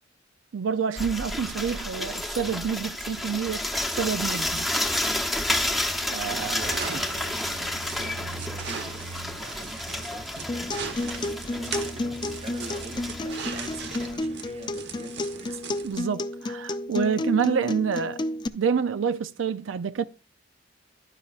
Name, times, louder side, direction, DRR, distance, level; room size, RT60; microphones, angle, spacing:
voice 1, 0.5-3.7 3.9-4.7 6.0-7.0 15.8-18.2 18.5-20.1, right 6 dB, 90° right, 0.4 m, -28 dB
sound 1, 1.0-14.1, left 1 dB, ahead, 0.8 m, -31 dB
voice 2, 6.3-15.6, right 2 dB, 35° right, 0.8 m, -43 dB
sound 2, 6.6-16.0, right 5 dB, 65° right, 1.0 m, -39 dB
Acoustic guitar, 10.5-18.5, left 2 dB, 25° left, 0.4 m, -32 dB
11.5 x 9.6 x 2.4 m
head